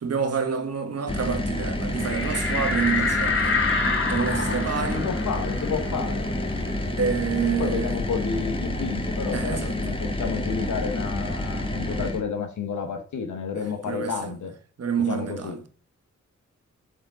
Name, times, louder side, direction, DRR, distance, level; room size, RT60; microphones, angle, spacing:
voice 1, 0.0-3.6 4.1-5.1 7.0-8.0 9.3-9.7 13.6-14.3 14.8-15.7, right 6 dB, 55° right, 1.3 m, -28 dB
sound 1, 1.1-12.2, left 1 dB, 15° left, 1.5 m, -29 dB
sound 2, 2.0-7.2 7.5-7.6 8.0-9.6, left 3 dB, 45° left, 1.8 m, -28 dB
voice 2, 4.7-6.3 7.6-14.5 15.1-15.6, left 6 dB, 75° left, 1.0 m, -30 dB
6.4 x 4.9 x 4.9 m
cardioid pair, 70°, 30 cm